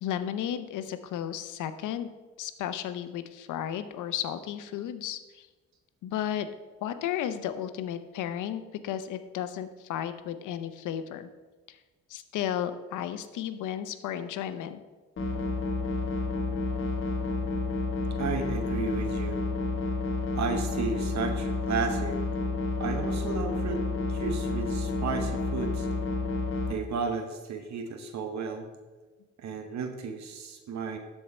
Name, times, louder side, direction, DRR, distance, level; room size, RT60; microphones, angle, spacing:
voice 1, 0.0-2.1 2.4-5.5 6.0-6.5 6.8-11.3 11.7-11.8 12.1-14.8, left 10 dB, 85° left, 11 dB, 0.7 m, -33 dB
sound 1, 15.2-26.7, left 3 dB, 40° left, 1.4 m, -30 dB
voice 2, 18.2-19.4 20.4-22.2 22.8-23.8 24.1-25.9 26.7-28.7 29.4-31.0, right 5 dB, 65° right, 6 dB, 1.0 m, -33 dB
12.5 x 4.6 x 4.3 m, 1.3 s
cardioid pair, 90°, 30 cm